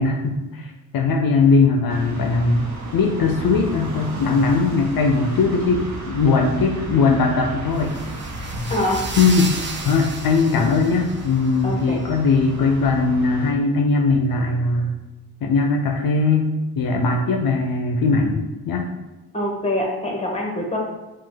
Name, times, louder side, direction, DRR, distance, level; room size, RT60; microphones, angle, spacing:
voice 1, 0.0-2.7 2.9-7.9 8.4-8.5 9.2-9.6 9.8-15.0 15.4-16.5 16.8-18.9, left 4 dB, 65° left, 3 dB, 0.5 m, -19 dB
sound 1, 1.9-13.5, right 1 dB, 45° right, 1.0 m, -34 dB
sound 2, 7.7-11.6, right 4 dB, 30° right, 0.6 m, -34 dB
voice 2, 8.7-9.0 11.6-12.0 19.3-20.8, left 1 dB, 15° left, 0 dB, 1.3 m, -24 dB
4.8 x 2.4 x 3.8 m, 1.1 s
cardioid pair, 60°, 38 cm